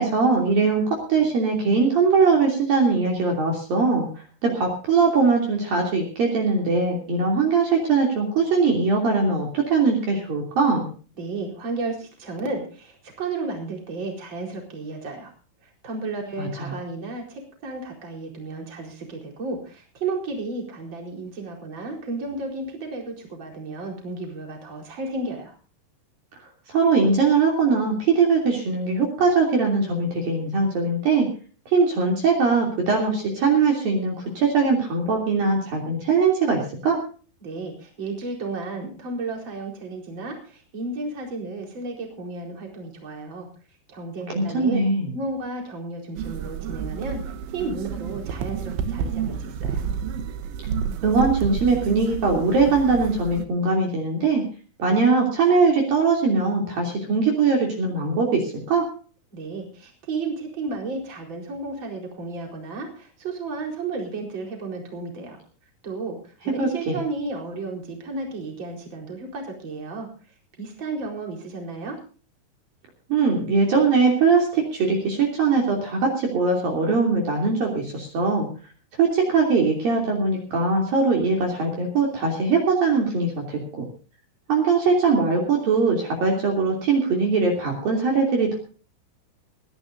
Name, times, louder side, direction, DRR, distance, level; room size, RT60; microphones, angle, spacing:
voice 1, 0.0-4.1 4.4-10.9 16.4-16.7 26.7-31.3 31.7-37.0 44.3-45.1 51.0-54.4 54.8-58.9 66.6-67.0 73.1-78.5 79.0-83.9 84.5-88.6, right 4 dB, 50° right, 0 dB, 4.4 m, -21 dB
voice 2, 11.2-15.3 15.8-25.5 37.4-43.5 43.9-44.8 45.1-47.2 47.5-49.8 59.3-65.4 65.8-66.2 66.4-70.1 70.6-72.0, right 3 dB, 25° right, 1 dB, 4.6 m, -33 dB
sound 1, 46.2-53.5, right 7 dB, 75° right, 3.5 m, -30 dB
21.0 x 16.5 x 2.7 m, 0.39 s
omnidirectional pair, 5.7 m